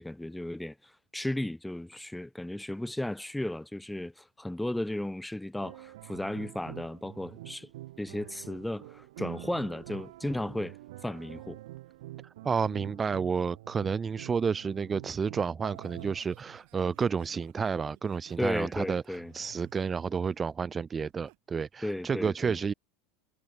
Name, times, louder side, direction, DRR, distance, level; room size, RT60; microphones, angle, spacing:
voice 1, 0.0-7.7 8.0-10.8 11.0-11.6 18.4-19.3 21.8-22.6, left 1 dB, 5° left, 1.2 m, -35 dB
sound 1, 5.6-16.2, right 16 dB, 80° right, 1.1 m, -46 dB
voice 2, 12.4-22.7, right 6 dB, 15° right, 0.3 m, -30 dB
Laughter, 15.7-21.4 21.8-22.1, right 34 dB, 50° right, 7.0 m, -58 dB
supercardioid pair, 175°, 0 cm